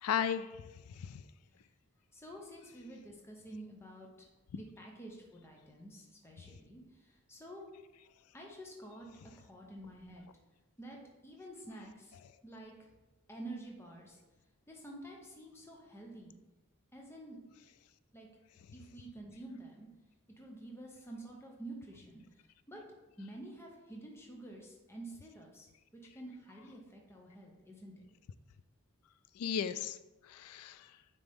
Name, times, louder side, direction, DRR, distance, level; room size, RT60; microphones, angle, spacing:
voice 1, 0.0-0.5 0.9-1.2 29.4-30.0 30.2-30.9, left 8 dB, 85° left, 13 dB, 0.4 m, -35 dB
voice 2, 2.1-4.1 4.5-7.7 8.3-9.1 9.4-10.2 10.8-12.1 12.4-12.7 13.3-14.2 14.7-16.4 16.9-17.4 18.1-18.3 18.7-19.9 20.4-22.2 22.7-22.8 23.2-25.7 26.1-27.9, right 1 dB, 10° left, -1 dB, 0.8 m, -49 dB
9.2 x 4.0 x 3.6 m, 1.1 s
head